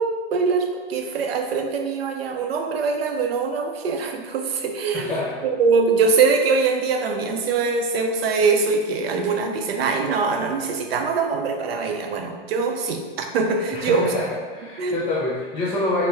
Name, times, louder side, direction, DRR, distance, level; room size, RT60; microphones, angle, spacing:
voice 1, 0.0-5.2 5.4-14.1 14.8-15.0, right 4 dB, 80° right, 4 dB, 0.6 m, -23 dB
voice 2, 4.9-5.4 13.7-16.1, left 2 dB, 15° left, -6 dB, 0.8 m, -26 dB
4.1 x 2.1 x 3.5 m, 1.4 s
hypercardioid pair, 115°, 30 cm